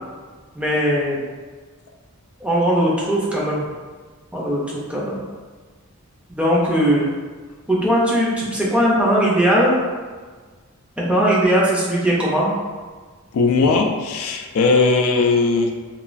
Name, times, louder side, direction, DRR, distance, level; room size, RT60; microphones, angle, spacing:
voice 1, 0.5-1.2 2.4-3.7 4.3-4.6 4.9-5.2 6.3-7.1 7.7-9.8 11.0-12.5, equal, 5° right, -6 dB, 0.4 m, -19 dB
voice 2, 13.3-15.7, left 4 dB, 70° left, 3 dB, 0.3 m, -18 dB
3.0 x 2.3 x 2.4 m, 1.5 s
head